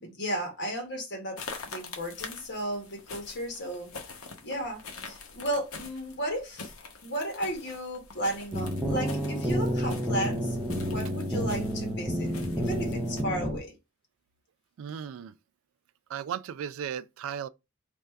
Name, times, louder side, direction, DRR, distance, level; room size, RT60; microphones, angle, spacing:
voice 1, 0.0-3.9 4.4-6.7 7.0-10.6 10.8-13.7, equal, 55° left, 1.5 m, -34 dB
sound 1, 1.4-13.2, left 4 dB, 75° left, 0.9 m, -45 dB
sound 2, 8.5-13.6, equal, 5° right, 0.6 m, -30 dB
voice 2, 14.8-15.4 16.1-17.5, right 8 dB, 65° right, 0.3 m, -36 dB
3.3 x 2.6 x 4.5 m
head